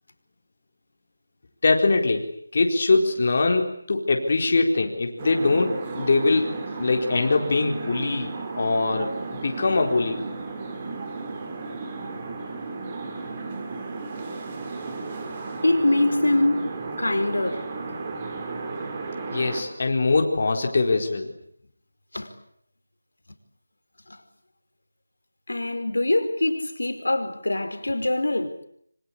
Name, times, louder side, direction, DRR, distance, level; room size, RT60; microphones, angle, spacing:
voice 1, 1.6-2.3 2.5-10.2 19.3-21.3, left 3 dB, 45° left, 4.2 m, -22 dB
sound 1, 5.2-19.6, right 3 dB, 25° right, 4.6 m, -34 dB
voice 2, 15.6-16.6 17.0-17.7 22.1-22.3 25.5-28.6, left 1 dB, 80° left, 5.0 m, -23 dB
27.0 x 25.5 x 8.6 m
figure-of-eight pair, 170°, 0 cm